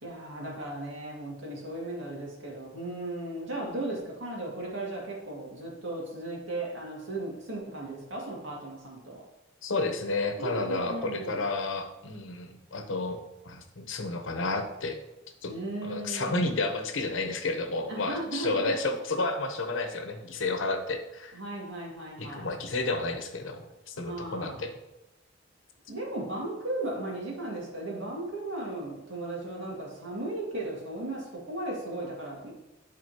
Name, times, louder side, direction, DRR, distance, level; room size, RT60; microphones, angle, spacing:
voice 1, 0.0-9.2 10.4-11.4 15.5-16.5 17.9-18.7 21.3-22.5 24.0-24.6 25.9-32.5, right 2 dB, 75° right, -3 dB, 2.1 m, -36 dB
voice 2, 9.6-15.0 15.4-15.5 15.8-21.4 22.2-24.7, left 2 dB, 80° left, 5 dB, 0.9 m, -31 dB
10.5 x 4.2 x 2.9 m, 0.97 s
head